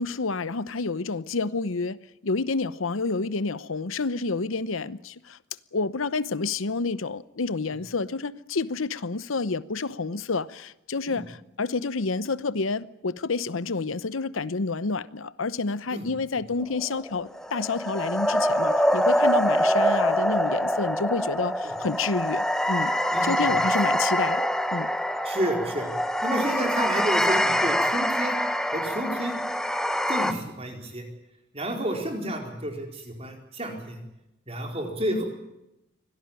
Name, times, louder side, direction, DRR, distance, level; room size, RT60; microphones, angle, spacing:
voice 1, 0.0-5.4 5.7-22.9 23.2-24.9, left 3 dB, 85° left, 0.8 m, -29 dB
sound 1, 16.6-30.3, equal, 5° left, 1.0 m, -25 dB
voice 2, 23.1-23.5 25.2-25.9 26.2-28.4 28.7-29.4 30.1-31.0 31.5-34.0 34.5-35.2, right 1 dB, 30° right, 4.6 m, -30 dB
24.5 x 18.0 x 9.0 m
head